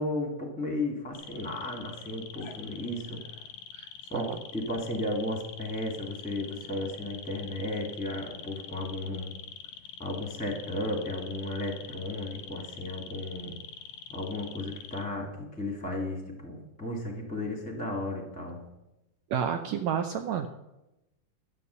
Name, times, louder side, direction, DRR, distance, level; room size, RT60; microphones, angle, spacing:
voice 1, 0.0-3.3 4.1-9.4 10.0-13.6 14.1-18.6, left 1 dB, 5° left, 2 dB, 1.2 m, -34 dB
sound 1, 1.1-15.0, left 7 dB, 70° left, 1.6 m, -45 dB
voice 2, 3.7-4.4 19.3-20.5, right 8 dB, 75° right, 6 dB, 1.7 m, -31 dB
11.5 x 9.7 x 6.8 m, 0.94 s
omnidirectional pair, 3.7 m